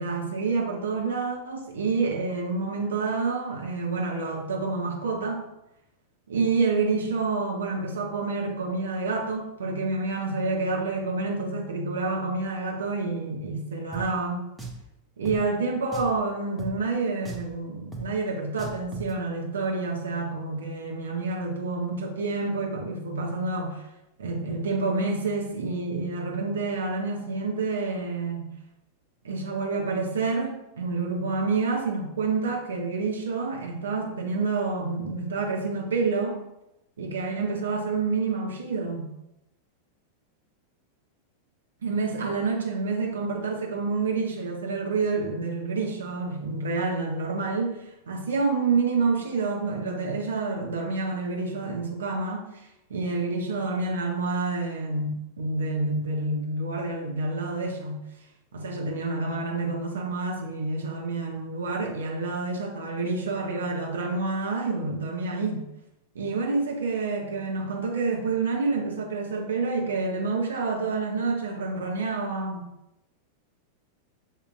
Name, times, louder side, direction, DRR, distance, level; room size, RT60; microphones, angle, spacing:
voice 1, 0.0-5.5 6.3-14.4 15.2-23.8 24.2-28.5 29.2-36.4 37.0-39.1 41.8-47.8 48.1-58.0 58.5-65.6 66.1-72.6, right 3 dB, 65° right, 0 dB, 0.9 m, -28 dB
Drum, 13.9-14.1 14.6-14.8 15.3-15.4 15.9-16.2 16.6-16.7 17.3-17.5 17.9-18.1 18.6-19.1, right 4 dB, 5° right, 0.7 m, -37 dB
7.3 x 2.8 x 2.5 m, 0.88 s
figure-of-eight pair, 90°, 0 cm